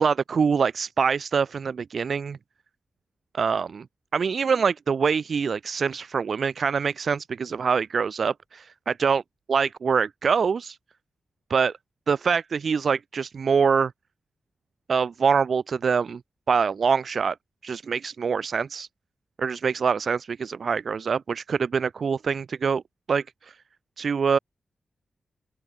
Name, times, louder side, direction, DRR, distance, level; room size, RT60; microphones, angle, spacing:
voice 1, 0.0-2.4 3.3-3.8 4.1-9.2 9.5-10.8 11.5-11.7 12.1-13.9 14.9-16.2 16.5-17.4 17.6-18.9 19.4-22.8 23.1-23.5 24.0-24.4, right 6 dB, 50° right, 3.7 m, -24 dB
open air
wide cardioid pair, 180°, 0 cm